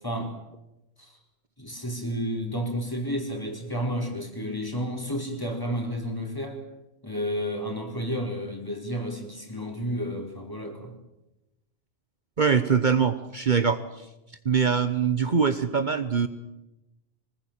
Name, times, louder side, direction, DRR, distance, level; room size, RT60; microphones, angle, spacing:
voice 1, 0.0-0.4 1.0-1.2 1.6-6.6 7.0-10.9, equal, 20° left, 2 dB, 4.5 m, -31 dB
voice 2, 12.4-14.1 14.4-16.3, right 6 dB, 50° right, 10 dB, 1.2 m, -23 dB
25.5 x 20.0 x 8.8 m, 0.96 s
omnidirectional pair, 1.1 m